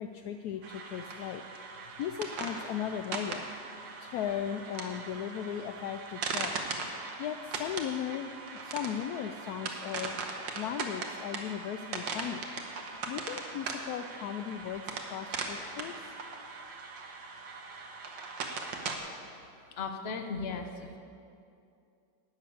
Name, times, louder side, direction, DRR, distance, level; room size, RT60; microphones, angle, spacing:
voice 1, 0.0-3.5 4.0-6.6 7.2-12.5 13.1-16.1, left 9 dB, 75° left, 7 dB, 0.9 m, -37 dB
sound 1, 0.6-19.0, right 4 dB, 75° right, 1.8 m, -39 dB
voice 2, 19.8-21.0, left 4 dB, 45° left, 5 dB, 0.8 m, -36 dB
12.5 x 6.5 x 9.2 m, 2.5 s
omnidirectional pair, 2.0 m